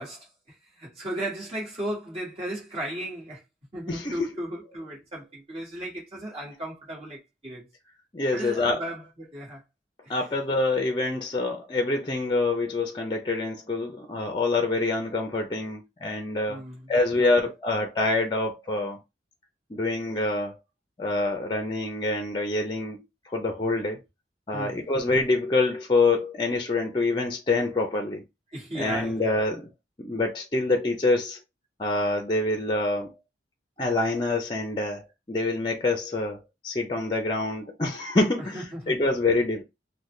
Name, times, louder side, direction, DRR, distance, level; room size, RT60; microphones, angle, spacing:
voice 1, 0.0-3.4 3.7-7.7 8.3-9.6 10.0-10.1 16.5-16.9 17.2-17.4 24.5-24.8 28.5-29.3 38.5-39.0, right 1 dB, 35° right, 1.5 m, -36 dB
voice 2, 3.9-4.3 8.1-8.8 10.1-16.6 16.9-19.0 19.7-20.6 21.0-24.0 24.5-28.2 28.7-29.7 30.0-31.4 31.8-33.1 33.8-39.6, left 2 dB, 25° left, 0.5 m, -26 dB
3.9 x 2.1 x 3.1 m
head